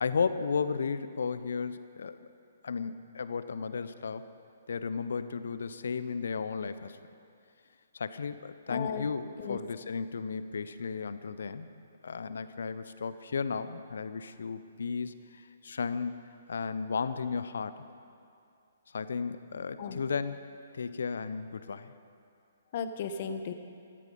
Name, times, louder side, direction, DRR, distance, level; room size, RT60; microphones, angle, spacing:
voice 1, 0.0-2.3 2.6-4.3 4.7-7.0 7.9-11.7 12.0-15.2 15.6-17.8 18.9-20.4 20.7-21.9, left 5 dB, 65° left, 13 dB, 0.7 m, -34 dB
voice 2, 8.7-9.1 9.4-9.6 19.8-20.0 22.7-23.5, left 6 dB, 45° left, 9 dB, 1.1 m, -35 dB
16.5 x 14.5 x 5.2 m, 2.5 s
figure-of-eight pair, 125°, 0 cm